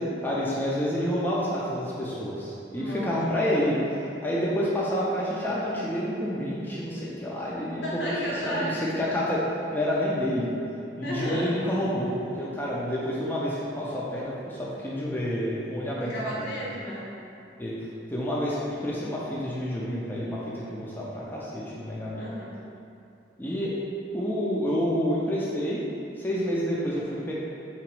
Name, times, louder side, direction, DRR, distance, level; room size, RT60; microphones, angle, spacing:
voice 1, 0.2-3.8 4.2-7.8 8.4-9.4 9.7-10.5 11.0-12.1 12.4-16.5 17.6-17.8 18.1-22.2 23.4-23.7 24.1-25.8 26.2-27.3, equal, 10° left, -6 dB, 0.4 m, -28 dB
voice 2, 2.8-3.1 7.8-8.8 11.0-11.5 16.0-17.1 22.2-22.5, equal, 80° left, -6 dB, 1.2 m, -32 dB
3.9 x 2.9 x 4.6 m, 2.7 s
head